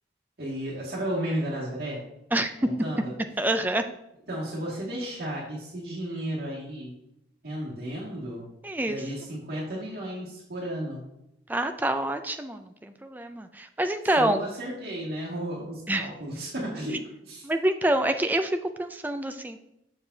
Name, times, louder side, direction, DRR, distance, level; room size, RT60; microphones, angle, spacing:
voice 1, 0.4-2.0 2.6-3.1 4.3-7.0 7.4-8.5 8.9-11.0 14.2-17.5, right 1 dB, 55° right, -6 dB, 2.2 m, -33 dB
voice 2, 3.4-3.8 8.6-9.0 11.5-14.4 15.9-16.1 17.4-19.6, right 1 dB, 10° right, 7 dB, 0.4 m, -27 dB
7.2 x 6.8 x 2.8 m, 0.84 s
head